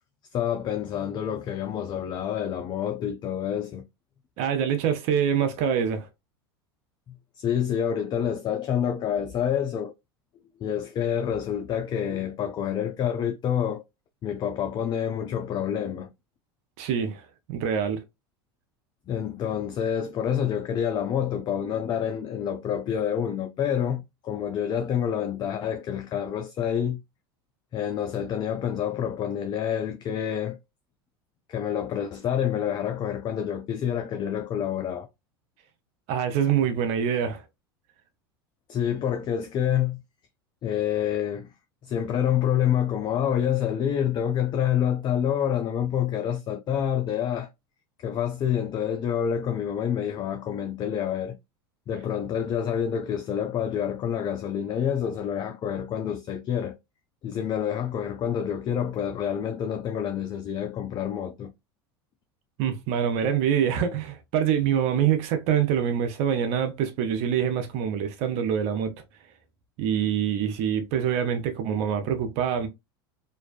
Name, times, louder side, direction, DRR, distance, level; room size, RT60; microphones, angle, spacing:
voice 1, 0.3-3.9 7.1-9.9 10.6-13.8 14.2-16.1 19.1-27.0 27.7-30.6 31.5-35.1 38.7-40.0 40.6-41.5 41.8-47.5 48.0-51.4 51.9-56.8 57.2-61.5, left 9 dB, 35° left, 0.4 m, -27 dB
voice 2, 4.4-6.1 16.8-18.0 36.1-37.4 62.6-68.9 69.8-72.7, right 8 dB, 55° right, 0.5 m, -25 dB
2.5 x 2.1 x 2.3 m
hypercardioid pair, 90°, 13 cm